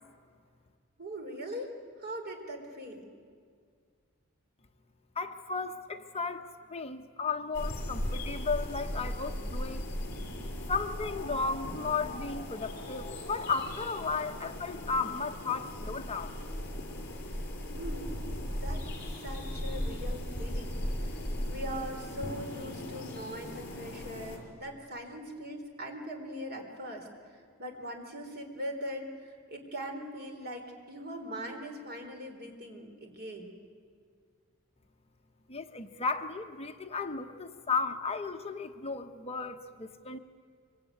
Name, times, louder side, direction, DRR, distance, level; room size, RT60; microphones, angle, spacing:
voice 1, 1.0-1.7 2.0-3.1 17.7-18.2 18.6-18.9 19.2-33.5, equal, 50° right, 3 dB, 4.2 m, -41 dB
voice 2, 5.1-9.8 10.7-16.4 35.5-40.2, left 4 dB, 30° left, 6 dB, 1.0 m, -34 dB
sound 1, 7.5-24.4, left 1 dB, 55° left, 5.1 m, -37 dB
25.0 x 24.0 x 9.4 m, 2.1 s
head